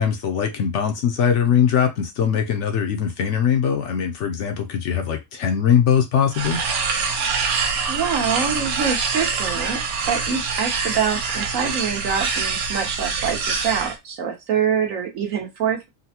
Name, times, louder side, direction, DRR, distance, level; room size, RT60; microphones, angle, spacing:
voice 1, 0.0-6.6, left 8 dB, 65° left, 0.8 m, -21 dB
sound 1, 6.3-14.0, right 5 dB, 85° right, 1.2 m, -25 dB
voice 2, 7.4-9.8 10.1-15.9, right 7 dB, 70° right, 1.3 m, -25 dB
3.9 x 2.1 x 2.8 m
omnidirectional pair, 1.5 m